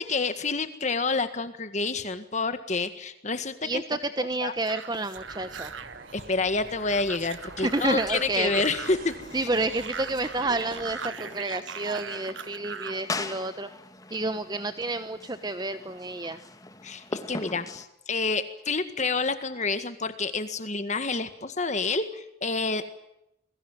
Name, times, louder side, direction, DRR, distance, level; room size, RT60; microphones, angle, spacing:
voice 1, 0.0-3.8 4.2-4.5 6.1-9.5 16.8-22.9, left 3 dB, 35° left, 10 dB, 1.8 m, -28 dB
voice 2, 3.6-5.7 7.6-8.8 9.3-13.7 14.1-16.4, right 2 dB, 20° right, 10 dB, 1.1 m, -30 dB
sound 1, 4.7-13.0, right 6 dB, 75° right, 1.7 m, -40 dB
sound 2, 5.1-11.0, right 2 dB, 50° right, 4.7 m, -47 dB
sound 3, 7.3-17.8, left 2 dB, 20° left, 1.7 m, -41 dB
29.5 x 22.0 x 9.2 m, 0.83 s
head